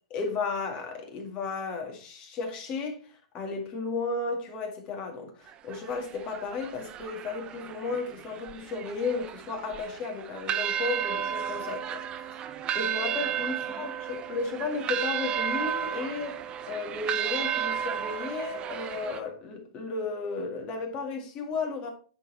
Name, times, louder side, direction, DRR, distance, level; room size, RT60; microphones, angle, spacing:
voice 1, 0.1-3.0 3.3-12.0 12.7-16.4 16.7-21.9, left 4 dB, 30° left, 2.3 m, -34 dB
sound 1, 5.5-19.2, right 9 dB, 25° right, 0.7 m, -33 dB
9.7 x 4.3 x 4.3 m
hypercardioid pair, 135°, 4 cm